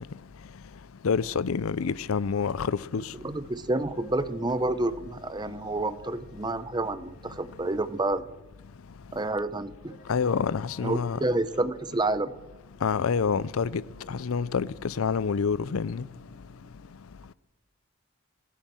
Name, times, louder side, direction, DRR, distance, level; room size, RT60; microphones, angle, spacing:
voice 1, 1.0-3.1 10.1-11.2 12.8-13.8 14.1-16.0, left 5 dB, 90° left, 0.5 m, -27 dB
sound 1, 2.6-8.6 9.8-16.8, left 2 dB, 45° left, 4.7 m, -56 dB
voice 2, 3.2-8.2 9.1-10.0 10.8-12.3, right 2 dB, 20° right, 0.7 m, -29 dB
18.0 x 10.5 x 7.6 m
head